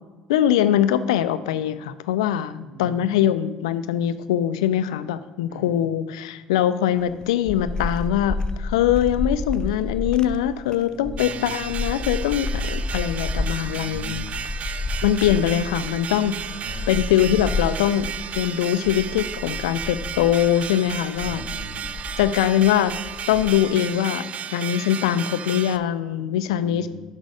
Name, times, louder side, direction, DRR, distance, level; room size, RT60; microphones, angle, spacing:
voice 1, 0.3-14.3 14.6-16.3 16.9-21.4 22.2-23.0 23.3-24.3 24.5-26.9, left 11 dB, 85° left, 13 dB, 0.4 m, -22 dB
voice 2, 2.6-3.1 5.5-5.7 10.8-11.6 13.6-14.2 16.4-16.9 21.2-22.0 26.5-26.9, right 3 dB, 75° right, 1 dB, 1.7 m, -40 dB
sound 1, 7.0-23.8, left 2 dB, 25° left, 0.5 m, -31 dB
sound 2, 11.2-25.8, right 8 dB, 45° right, 0.4 m, -34 dB
6.3 x 5.3 x 4.9 m, 1.3 s
hypercardioid pair, 65°, 3 cm